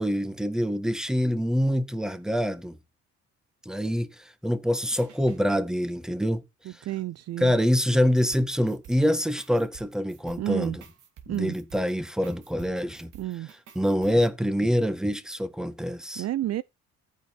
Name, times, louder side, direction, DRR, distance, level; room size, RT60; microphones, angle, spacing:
voice 1, 0.0-2.8 3.6-4.1 4.4-6.4 7.4-10.8 11.3-13.1 13.7-16.2, equal, ahead, 1.6 m, -25 dB
sound 1, 4.7-5.4 8.3-14.3, right 7 dB, 75° right, 2.6 m, -51 dB
voice 2, 6.7-7.5 10.4-10.8 11.3-11.5 13.1-13.5 16.2-16.6, right 13 dB, 60° right, 0.5 m, -30 dB
14.5 x 5.3 x 4.2 m
cardioid pair, 90°, 30 cm